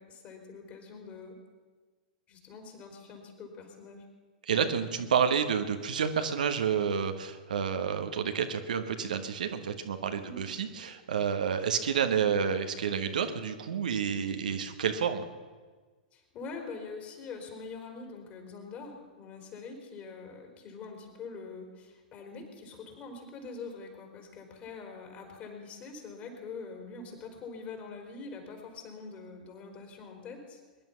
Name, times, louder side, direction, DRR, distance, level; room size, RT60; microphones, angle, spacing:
voice 1, 0.0-1.4 2.3-4.0 10.2-10.4 16.1-30.6, left 4 dB, 35° left, 3 dB, 4.1 m, -44 dB
voice 2, 4.5-15.2, right 7 dB, 70° right, 7 dB, 1.3 m, -29 dB
22.5 x 11.0 x 5.8 m, 1.4 s
figure-of-eight pair, 100°, 4 cm